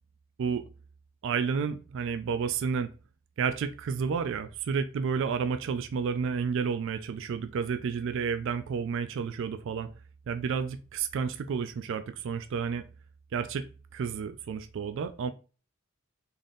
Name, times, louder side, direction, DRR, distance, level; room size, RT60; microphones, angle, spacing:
voice 1, 1.2-2.9 3.4-9.9 10.3-12.8 13.3-15.3, right 6 dB, 65° right, 0.3 m, -31 dB
3.8 x 2.6 x 3.5 m
head